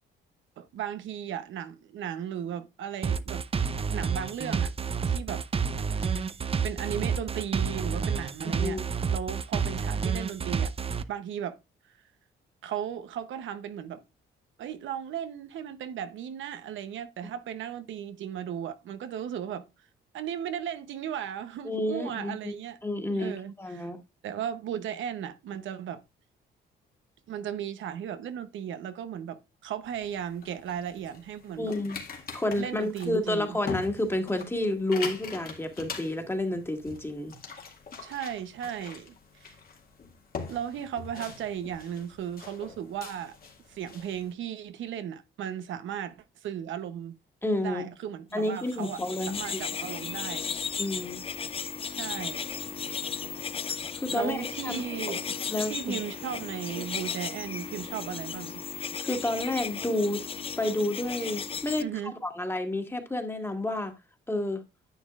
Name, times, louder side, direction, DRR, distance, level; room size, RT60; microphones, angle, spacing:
voice 1, 0.6-3.4 3.9-4.7 5.1-5.4 6.0-6.2 6.6-8.8 9.1-10.7 11.1-11.6 12.6-14.0 14.6-19.7 20.1-22.8 23.1-23.9 24.2-26.0 27.3-31.8 32.6-33.6 38.0-39.5 40.5-43.4 43.7-47.2 47.6-49.0 49.3-50.5 51.9-52.5 54.1-55.2 55.7-58.6 61.8-62.2, right 9 dB, 75° right, 0.8 m, -36 dB
sound 1, 3.0-11.0, right 6 dB, 30° right, 0.6 m, -29 dB
voice 2, 8.4-8.9 21.6-22.5 22.8-24.0 31.6-32.0 32.3-37.3 47.4-47.9 48.3-49.6 50.8-51.2 54.0-54.8 55.5-56.0 59.0-60.2 60.6-61.8 62.2-63.9 64.3-64.6, left 1 dB, 10° left, 1.9 m, -30 dB
sound 2, 29.8-44.3, left 5 dB, 50° left, 2.0 m, -43 dB
sound 3, 48.6-61.8, left 6 dB, 30° left, 0.5 m, -35 dB
10.0 x 7.1 x 2.4 m
cardioid pair, 90°, 20 cm